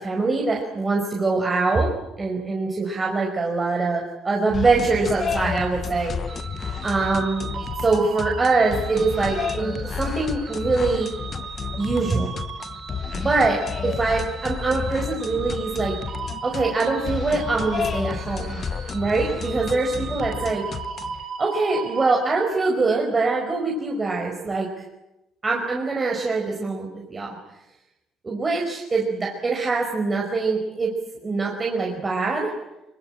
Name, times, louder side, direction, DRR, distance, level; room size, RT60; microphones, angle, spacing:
voice 1, 0.0-1.9 2.2-6.1 6.6-7.5 7.8-11.1 11.8-12.3 13.1-15.9 16.4-18.6 18.9-20.6 21.4-24.7 25.4-27.4 28.2-30.9 31.2-32.5, right 3 dB, 25° right, 0 dB, 5.1 m, -23 dB
sound 1, 4.5-21.2, left 6 dB, 35° left, 1.0 m, -31 dB
sound 2, 6.3-22.1, right 6 dB, 50° right, 6.8 m, -37 dB
24.5 x 24.0 x 8.9 m, 0.94 s
cardioid pair, 115°, 0 cm